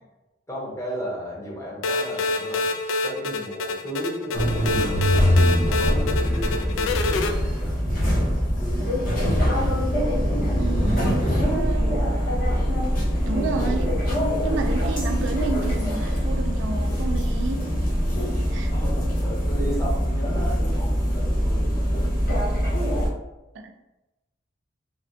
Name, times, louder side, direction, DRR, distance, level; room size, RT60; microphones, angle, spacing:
voice 1, 0.5-2.7 3.0-4.9 5.6-7.9 8.4-8.9 18.7-22.7, equal, 15° left, -4 dB, 0.7 m, -35 dB
sound 1, 1.8-7.3, left 3 dB, 85° left, 0.3 m, -27 dB
sound 2, 4.3-23.1, equal, 45° left, 0.8 m, -23 dB
voice 2, 10.6-12.0 13.2-13.9 14.4-17.6 18.5-18.7 23.5-23.8, right 4 dB, 75° right, 4 dB, 0.4 m, -30 dB
3.3 x 2.1 x 2.6 m, 0.99 s
head